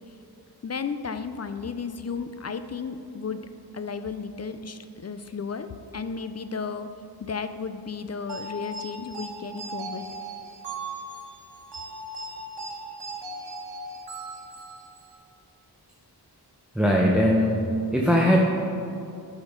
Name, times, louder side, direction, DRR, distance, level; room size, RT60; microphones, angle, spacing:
voice 1, 0.6-3.4 3.7-5.7 5.9-6.9 7.2-10.1, left 5 dB, 40° left, 10 dB, 0.4 m, -33 dB
sound 1, 8.3-15.1, right 2 dB, 90° right, 1.3 m, -38 dB
voice 2, 16.7-17.6 17.9-18.4, equal, ahead, -2 dB, 0.7 m, -20 dB
10.0 x 5.1 x 5.3 m, 2.6 s
wide cardioid pair, 80°, 40 cm